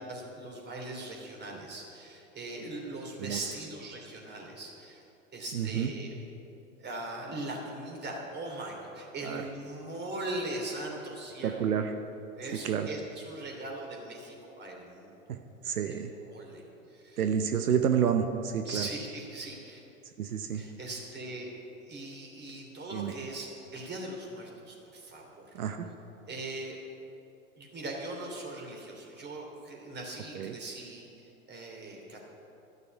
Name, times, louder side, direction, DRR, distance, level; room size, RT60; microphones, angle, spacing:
voice 1, 0.0-5.0 5.3-6.1 6.8-11.6 12.4-15.2 15.9-16.0 16.2-16.6 16.9-17.2 18.6-19.8 20.6-21.5 21.9-25.5 26.2-26.8 27.6-32.2, right 2 dB, 25° right, 0 dB, 3.1 m, -40 dB
voice 2, 5.5-5.9 9.2-9.5 11.4-11.9 12.5-12.9 15.3-16.1 17.2-18.9 20.2-20.6 22.9-23.1 25.5-25.9 30.3-30.5, right 8 dB, 85° right, 6 dB, 0.9 m, -29 dB
12.5 x 6.8 x 9.4 m, 2.9 s
hypercardioid pair, 100°, 43 cm